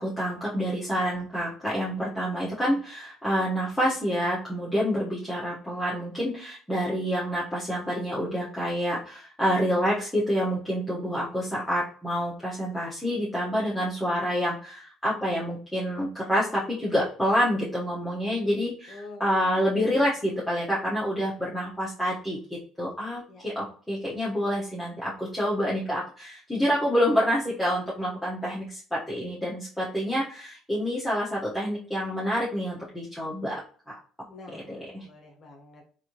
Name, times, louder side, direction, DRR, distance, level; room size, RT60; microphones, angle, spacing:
voice 1, 0.0-33.6 33.9-34.0 34.5-35.1, equal, 5° left, -8 dB, 1.0 m, -28 dB
voice 2, 18.9-19.2 23.3-23.4 34.3-34.8 35.0-36.0, left 2 dB, 35° left, 3 dB, 0.9 m, -46 dB
3.3 x 2.7 x 2.9 m, 0.43 s
cardioid pair, 130°, 0 cm